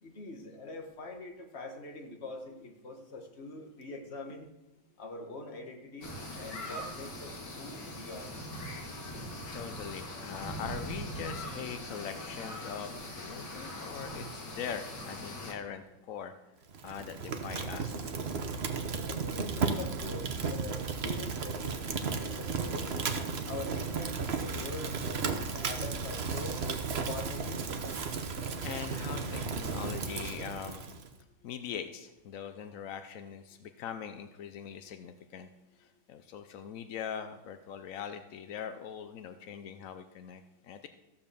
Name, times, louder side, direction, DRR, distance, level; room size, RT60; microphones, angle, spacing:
voice 1, 0.0-4.5 5.0-8.3 19.0-22.9 23.4-26.6 27.1-27.7, left 2 dB, 35° left, 3 dB, 1.5 m, -44 dB
sound 1, 6.0-15.5, equal, 60° left, 2.6 m, -41 dB
voice 2, 9.5-16.3 16.8-18.1 28.6-30.9 31.4-35.5 35.8-40.9, left 8 dB, 75° left, 9 dB, 0.7 m, -42 dB
Fire, 16.7-31.1, right 5 dB, 45° right, 0.8 m, -34 dB
14.5 x 5.5 x 6.8 m, 1.0 s
omnidirectional pair, 2.2 m